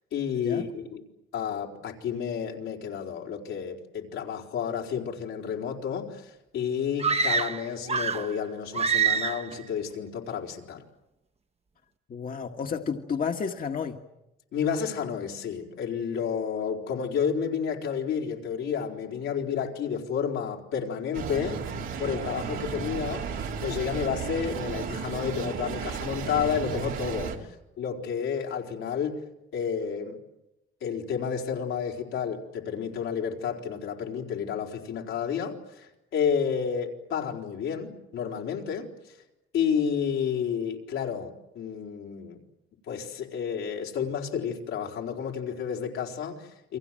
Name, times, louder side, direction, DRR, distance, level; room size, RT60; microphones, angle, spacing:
voice 1, 0.1-1.0 1.3-10.8 14.5-21.6 22.0-23.3 23.6-27.3 27.8-29.2 29.5-30.2 30.8-39.2 39.5-42.4 42.9-46.8, left 7 dB, 85° left, 0 dB, 4.5 m, -31 dB
sound 1, 7.0-8.4 8.7-9.5, right 6 dB, 30° right, 1.2 m, -26 dB
voice 2, 12.1-14.0, left 6 dB, 45° left, 3 dB, 1.7 m, -31 dB
sound 2, 21.1-27.4, right 6 dB, 90° right, 3.6 m, -34 dB
29.5 x 23.5 x 7.7 m, 0.92 s
cardioid pair, 90°, 20 cm